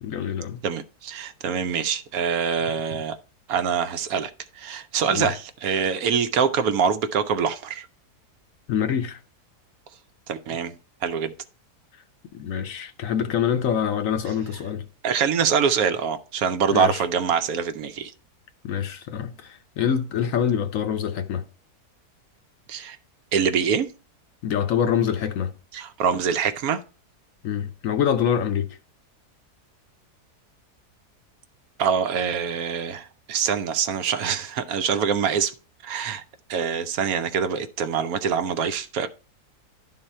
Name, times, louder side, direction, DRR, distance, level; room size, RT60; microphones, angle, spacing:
voice 1, 0.0-0.6 5.1-5.3 8.7-9.2 12.3-14.9 16.7-17.0 18.6-21.4 24.4-25.5 27.4-28.7, left 8 dB, 65° left, 1.0 m, -25 dB
voice 2, 0.6-3.2 3.5-4.3 4.6-7.9 10.3-10.7 11.0-11.3 15.0-18.1 22.7-23.0 23.3-23.9 25.7-26.8 31.8-35.5 35.8-36.2 36.5-39.1, right 7 dB, 70° right, 1.0 m, -24 dB
11.0 x 4.0 x 4.3 m
omnidirectional pair, 1.7 m